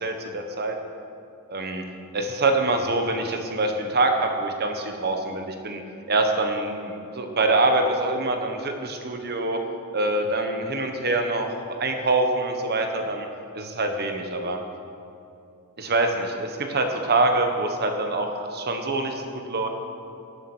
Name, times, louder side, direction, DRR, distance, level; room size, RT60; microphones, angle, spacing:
voice 1, 0.0-0.8 1.5-1.8 2.1-5.8 6.1-9.6 9.9-11.5 11.8-13.3 13.5-14.6 15.8-19.7, right 2 dB, 50° right, 4 dB, 1.4 m, -25 dB
18.0 x 7.8 x 6.3 m, 2.7 s
head